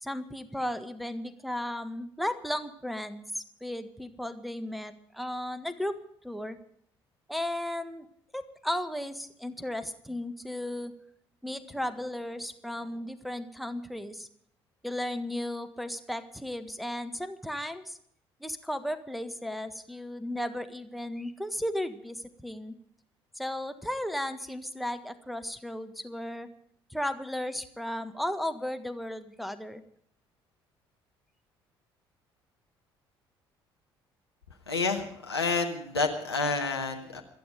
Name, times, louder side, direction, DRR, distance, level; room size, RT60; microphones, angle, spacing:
voice 1, 0.0-6.0 6.2-6.6 7.3-8.1 8.3-10.9 11.4-14.3 14.8-18.0 18.4-22.7 23.3-26.5 26.9-29.8, left 1 dB, ahead, 8 dB, 1.5 m, -35 dB
voice 2, 34.7-37.2, left 4 dB, 85° left, 2 dB, 1.7 m, -29 dB
27.5 x 9.5 x 5.0 m, 0.68 s
figure-of-eight pair, 50°, 13 cm